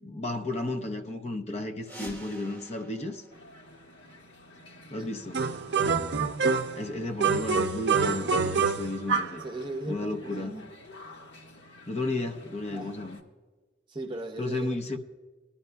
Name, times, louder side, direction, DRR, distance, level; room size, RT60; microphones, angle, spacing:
voice 1, 0.0-3.2 4.9-5.5 6.7-9.4 9.8-10.7 11.9-13.2 14.4-15.0, left 2 dB, 35° left, 0.6 m, -33 dB
sound 1, 1.8-4.4, right 1 dB, 10° left, 3.0 m, -47 dB
sound 2, 3.3-13.2, left 1 dB, 75° left, 1.4 m, -49 dB
sound 3, 5.3-6.8 7.2-9.4, right 5 dB, 70° right, 0.5 m, -26 dB
voice 2, 6.0-6.3 9.4-10.6 12.7-13.0 13.9-15.0, right 2 dB, 25° right, 0.8 m, -38 dB
20.0 x 11.5 x 2.2 m
head